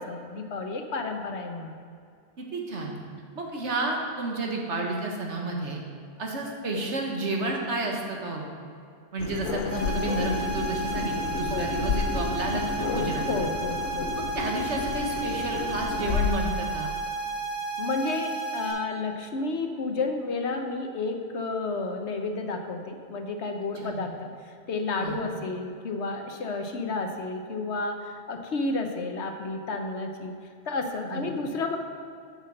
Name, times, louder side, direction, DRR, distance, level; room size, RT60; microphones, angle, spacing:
voice 1, 0.0-1.8 11.5-11.7 13.3-14.1 17.8-30.3 30.7-31.8, left 3 dB, 65° left, 4 dB, 1.1 m, -31 dB
voice 2, 2.4-3.0 3.3-5.8 6.2-8.5 9.1-13.3 14.2-16.9 23.8-24.0 25.0-25.3 31.1-31.3, right 2 dB, 65° right, 0 dB, 1.6 m, -31 dB
sound 1, 9.2-16.3, left 6 dB, 90° left, 1.1 m, -31 dB
sound 2, 9.7-18.7, right 3 dB, 15° right, 2.3 m, -32 dB
8.0 x 6.6 x 6.4 m, 2.3 s
omnidirectional pair, 1.3 m